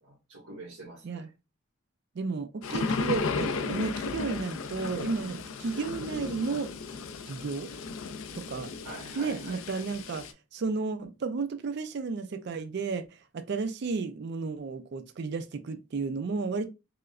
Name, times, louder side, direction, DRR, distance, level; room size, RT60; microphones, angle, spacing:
voice 1, 0.0-1.3 8.8-9.8, right 1 dB, 90° right, 1.3 m, -45 dB
voice 2, 2.2-6.7 7.3-7.7 8.3-8.7 9.2-10.3 10.5-16.7, right 4 dB, 55° right, 0.4 m, -33 dB
sound 1, 2.6-10.3, left 4 dB, 80° left, 0.4 m, -35 dB
4.8 x 2.1 x 2.4 m
head